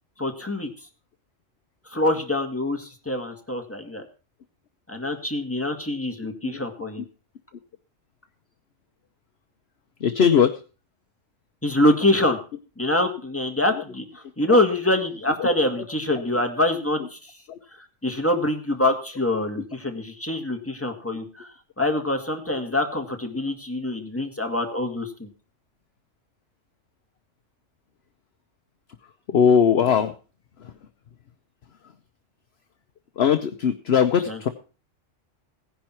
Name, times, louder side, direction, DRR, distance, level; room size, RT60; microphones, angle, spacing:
voice 1, 0.2-0.7 1.9-4.0 4.9-7.0 11.6-12.4 12.8-17.3 18.0-25.3 34.3-34.4, left 1 dB, 10° left, 3 dB, 1.9 m, -25 dB
voice 2, 10.0-10.5 14.5-14.6 15.4-15.5 17.5-17.6 29.3-30.1 30.6-30.7 33.2-34.5, left 7 dB, 60° left, 8 dB, 1.0 m, -20 dB
17.0 x 10.5 x 4.5 m, 0.36 s
omnidirectional pair, 1.3 m